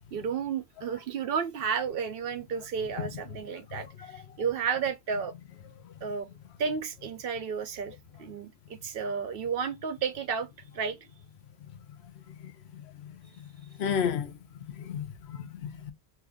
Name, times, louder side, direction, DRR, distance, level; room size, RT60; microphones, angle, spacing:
voice 1, 0.1-5.3 6.0-6.3 6.6-10.5 10.7-11.0, right 6 dB, 65° right, 0.8 m, -32 dB
voice 2, 13.8-14.3 14.7-15.9, left 7 dB, 80° left, 0.9 m, -32 dB
2.8 x 2.4 x 3.5 m
omnidirectional pair, 1.1 m